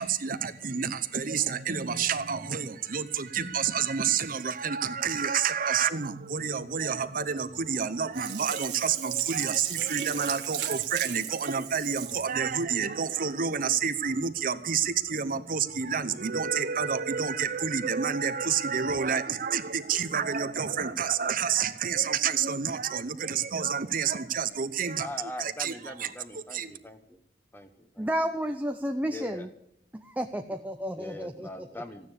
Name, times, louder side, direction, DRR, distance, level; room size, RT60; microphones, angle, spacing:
voice 1, 0.0-25.1 25.4-26.1 26.5-26.7, right 7 dB, 50° right, 0.8 m, -29 dB
Sink (filling or washing), 8.1-12.3 12.8-12.9, right 11 dB, 65° right, 1.5 m, -36 dB
voice 2, 25.0-27.2 27.5-28.1 29.1-29.5 30.9-32.1, left 2 dB, 10° left, 1.2 m, -41 dB
voice 3, 28.0-29.5 29.9-31.7, equal, 10° right, 0.6 m, -31 dB
15.0 x 9.9 x 8.2 m
head